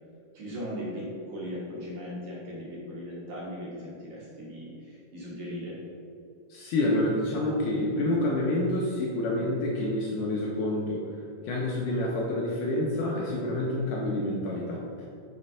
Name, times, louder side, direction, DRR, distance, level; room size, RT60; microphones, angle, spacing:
voice 1, 0.3-5.8, equal, 60° right, -6 dB, 2.5 m, -38 dB
voice 2, 6.5-11.0 11.4-14.8, left 1 dB, 75° left, -3 dB, 2.0 m, -28 dB
6.0 x 4.4 x 5.4 m, 2.5 s
omnidirectional pair, 4.3 m